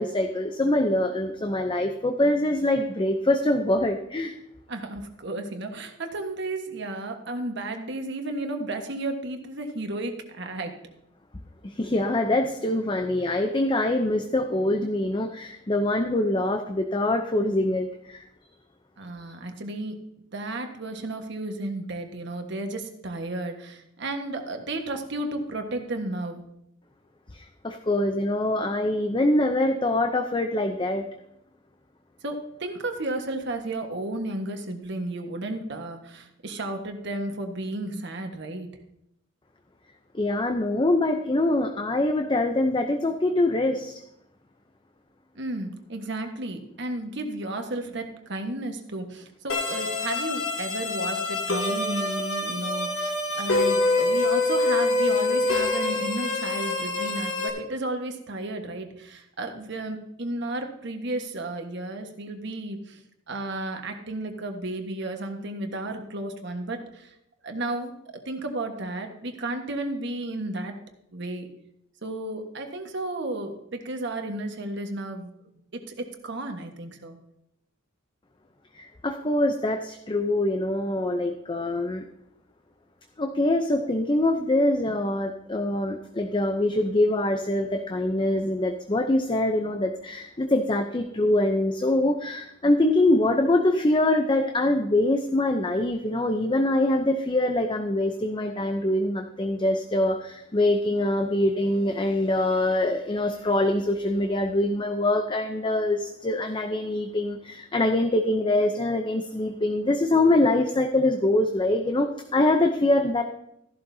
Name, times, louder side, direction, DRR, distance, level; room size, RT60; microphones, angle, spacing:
voice 1, 0.0-4.3 11.6-18.2 27.3-31.1 40.1-44.0 78.7-82.0 83.2-113.2, left 1 dB, 25° left, 5 dB, 0.6 m, -24 dB
voice 2, 4.7-10.7 19.0-20.0 20.3-26.4 32.2-38.7 45.3-63.0 63.3-67.1 67.4-67.9 68.2-70.7 71.1-71.5 72.0-75.3 75.7-77.2, right 2 dB, 60° right, 5 dB, 1.4 m, -33 dB
sound 1, 49.5-57.5, left 2 dB, 75° left, 2.7 m, -25 dB
14.0 x 11.5 x 2.8 m, 0.80 s
head